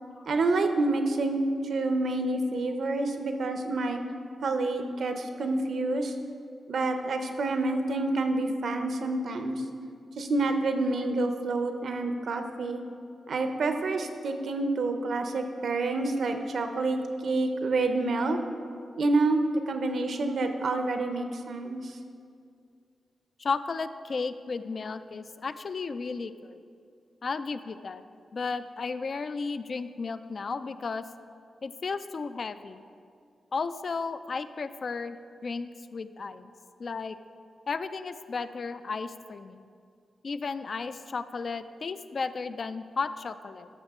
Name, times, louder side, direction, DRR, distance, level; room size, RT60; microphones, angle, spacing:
voice 1, 0.3-4.0 4.4-6.1 6.7-9.6 10.2-12.8 13.3-18.4 19.0-22.0, right 2 dB, 65° right, 6 dB, 0.7 m, -28 dB
voice 2, 23.4-26.6 27.2-28.0 28.3-31.0 31.6-32.8 33.5-35.2 35.4-36.5 36.8-37.2 37.7-39.6 40.2-43.7, left 4 dB, 45° left, 12 dB, 0.3 m, -34 dB
13.0 x 6.5 x 3.6 m, 2.3 s
wide cardioid pair, 135°, 0 cm